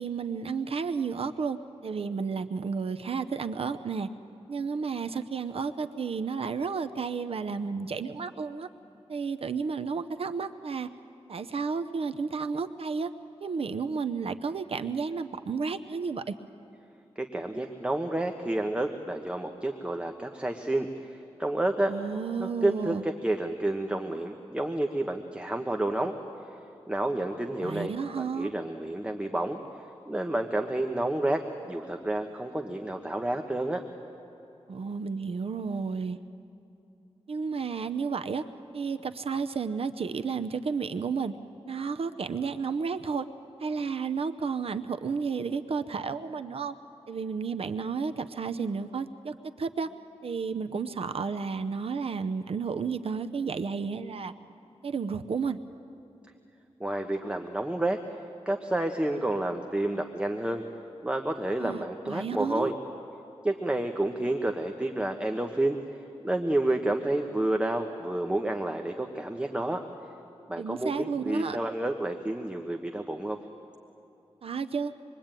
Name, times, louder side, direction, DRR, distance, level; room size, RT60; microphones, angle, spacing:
voice 1, 0.0-4.1 4.5-8.7 9.1-10.9 11.3-13.1 13.4-16.3 21.9-23.0 27.6-28.5 34.7-36.2 37.3-38.4 38.7-41.3 41.7-43.3 43.6-46.7 47.1-49.9 50.2-54.3 54.8-55.6 61.6-62.7 70.6-71.6 74.4-74.9, right 5 dB, 60° right, 9 dB, 0.8 m, -32 dB
voice 2, 17.2-21.9 22.4-26.2 26.9-29.6 30.1-33.8 56.8-58.0 58.4-60.6 61.0-62.7 63.4-65.8 66.2-69.8 70.5-73.4, right 1 dB, 10° right, 4 dB, 1.2 m, -30 dB
26.5 x 22.5 x 9.0 m, 2.9 s
wide cardioid pair, 110°, 11 cm